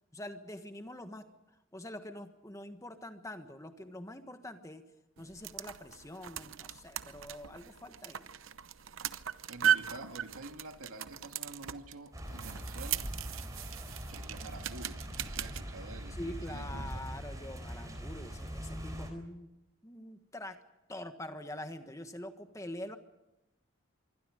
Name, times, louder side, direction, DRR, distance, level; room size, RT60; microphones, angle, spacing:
voice 1, 0.0-4.8 5.2-8.2 16.1-19.5 19.8-20.6 20.9-23.0, left 1 dB, 15° left, 1.4 m, -45 dB
sound 1, 5.2-15.6, right 9 dB, 70° right, 0.8 m, -37 dB
voice 2, 9.5-13.1 13.9-17.1, right 2 dB, 85° right, 2.2 m, -48 dB
sound 2, 12.1-19.1, equal, 15° right, 4.0 m, -42 dB
26.0 x 24.0 x 5.1 m
head